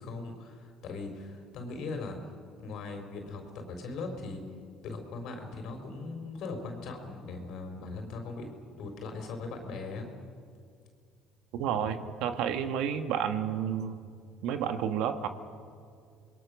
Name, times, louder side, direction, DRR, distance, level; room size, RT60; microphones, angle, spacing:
voice 1, 0.0-2.2 2.6-4.4 4.8-8.5 8.8-10.1, left 3 dB, 65° left, 4 dB, 4.3 m, -39 dB
voice 2, 11.5-14.0 14.4-15.3, right 8 dB, 75° right, 8 dB, 1.5 m, -30 dB
27.0 x 21.0 x 6.4 m, 2.3 s
supercardioid pair, 75°, 0 cm